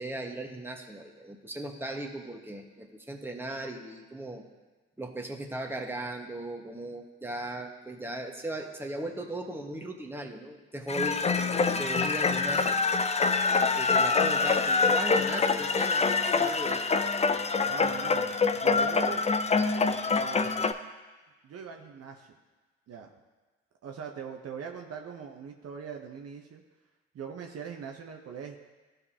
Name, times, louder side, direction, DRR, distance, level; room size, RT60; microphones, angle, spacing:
voice 1, 0.0-4.5 5.0-11.2 11.8-12.8 13.5-17.0, right 1 dB, 5° right, 1 dB, 1.5 m, -37 dB
sound 1, 10.9-20.7, left 4 dB, 20° left, 0.6 m, -25 dB
voice 2, 11.4-11.9 17.6-19.2 20.0-20.8 21.4-22.3 22.9-23.1 23.8-26.6 27.1-28.6, right 7 dB, 50° right, 2 dB, 1.0 m, -41 dB
15.0 x 5.3 x 2.9 m, 1.3 s
hypercardioid pair, 50°, 31 cm